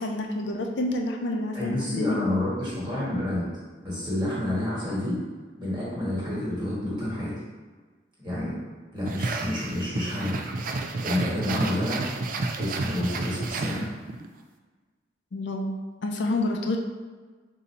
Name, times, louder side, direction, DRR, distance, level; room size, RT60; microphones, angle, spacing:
voice 1, 0.0-2.2 15.3-15.8 16.0-16.8, left 2 dB, 75° left, 2 dB, 0.5 m, -28 dB
voice 2, 1.5-3.5 3.8-5.1 5.6-7.3 8.2-8.5 8.9-10.4 11.0-12.0 12.6-13.8, left 1 dB, 25° right, -7 dB, 1.5 m, -29 dB
sound 1, 9.0-14.3, right 3 dB, 45° right, 0.3 m, -31 dB
3.8 x 2.7 x 4.2 m, 1.4 s
head